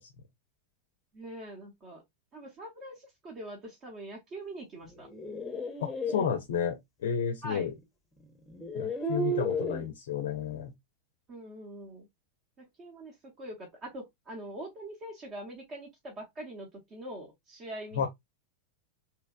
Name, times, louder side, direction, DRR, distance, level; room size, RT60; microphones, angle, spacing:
voice 1, 1.1-2.0 2.3-5.1 7.4-7.7 11.3-12.1 12.6-18.1, right 1 dB, 30° right, 0.9 m, -43 dB
sound 1, 4.9-6.2 7.7-7.8 8.5-9.9, equal, 10° left, 0.8 m, -33 dB
voice 2, 5.8-7.7 8.8-10.7 17.9-18.1, left 7 dB, 60° left, 0.4 m, -32 dB
3.2 x 2.9 x 2.2 m
figure-of-eight pair, 90°, 0 cm